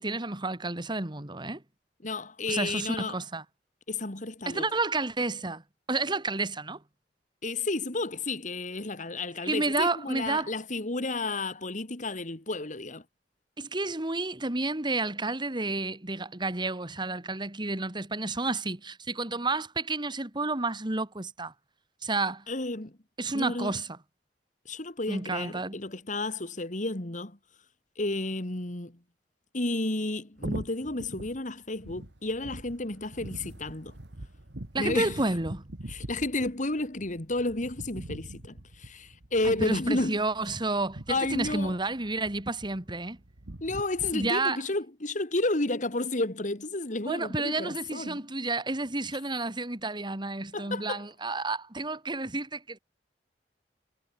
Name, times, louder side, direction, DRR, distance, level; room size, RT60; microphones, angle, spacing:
voice 1, 0.0-1.6 2.5-3.4 4.5-5.6 5.9-6.8 9.4-10.5 13.6-21.5 22.0-22.4 23.2-24.0 25.1-25.8 34.7-35.6 39.4-43.2 44.1-44.6 47.1-52.8, right 2 dB, 25° right, 2.0 m, -30 dB
voice 2, 2.0-3.2 3.9-4.6 7.4-13.0 22.5-22.9 23.3-23.8 24.7-27.4 28.0-29.0 29.5-33.9 34.8-35.1 35.9-40.2 41.1-41.8 43.6-48.2 50.5-51.0, left 2 dB, 45° left, 2.4 m, -32 dB
sound 1, 30.4-44.3, right 1 dB, 85° right, 2.0 m, -43 dB
head